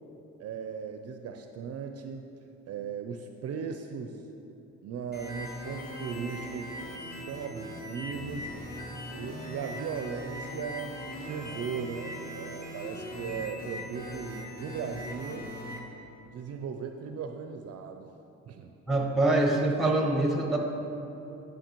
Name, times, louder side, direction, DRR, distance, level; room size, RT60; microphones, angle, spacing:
voice 1, 0.4-2.3 2.7-4.2 4.8-6.7 7.0-8.5 9.1-15.5 16.2-18.1 18.5-18.7, right 6 dB, 55° right, 5 dB, 0.4 m, -37 dB
sound 1, 5.1-15.8, equal, 30° left, 1.2 m, -40 dB
voice 2, 18.9-20.6, right 2 dB, ahead, 0 dB, 1.1 m, -24 dB
9.7 x 5.7 x 3.0 m, 3.0 s
cardioid pair, 90°, 30 cm